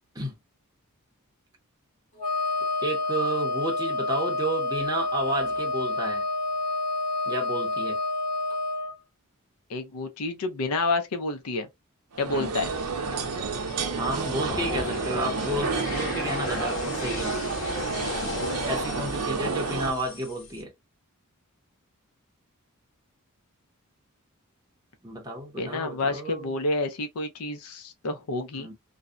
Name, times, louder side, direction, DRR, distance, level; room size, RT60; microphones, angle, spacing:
Wind instrument woodwind instrument, 2.2-8.9, left 2 dB, 35° left, 1.0 m, -28 dB
voice 1, 2.8-6.3 7.3-8.0 12.3-12.5 14.0-17.4 18.7-20.7 25.0-26.5 28.6-28.7, right 1 dB, 15° right, 0.6 m, -31 dB
voice 2, 9.7-11.7 12.2-12.7 14.6-15.0 25.6-28.7, left 2 dB, 80° left, 0.5 m, -29 dB
sound 1, 12.1-19.9, right 4 dB, 85° right, 0.6 m, -30 dB
sound 2, 12.7-20.6, left 3 dB, 60° left, 1.0 m, -36 dB
2.6 x 2.0 x 2.3 m
head